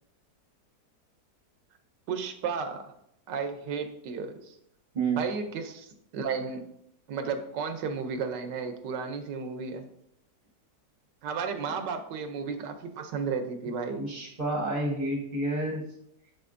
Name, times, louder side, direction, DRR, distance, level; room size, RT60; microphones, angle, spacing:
voice 1, 2.1-2.9 3.3-4.6 5.2-6.6 7.1-9.9 11.2-14.0, right 5 dB, 80° right, 8 dB, 1.3 m, -33 dB
voice 2, 14.0-15.8, right 2 dB, 35° right, 0 dB, 0.9 m, -29 dB
6.8 x 6.7 x 2.6 m, 0.75 s
omnidirectional pair, 1.9 m